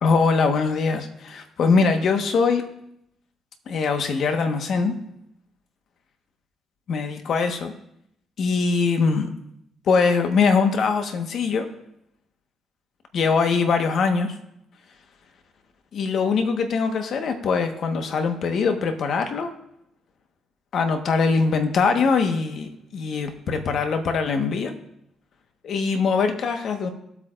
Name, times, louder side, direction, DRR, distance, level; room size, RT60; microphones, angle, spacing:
voice 1, 0.0-2.7 3.7-4.9 6.9-7.7 8.4-9.3 9.9-11.7 13.1-14.3 15.9-19.5 20.7-24.7 25.6-26.9, left 5 dB, 65° left, 6 dB, 1.3 m, -22 dB
20.0 x 8.4 x 2.5 m, 0.76 s
cardioid pair, 90°, 0 cm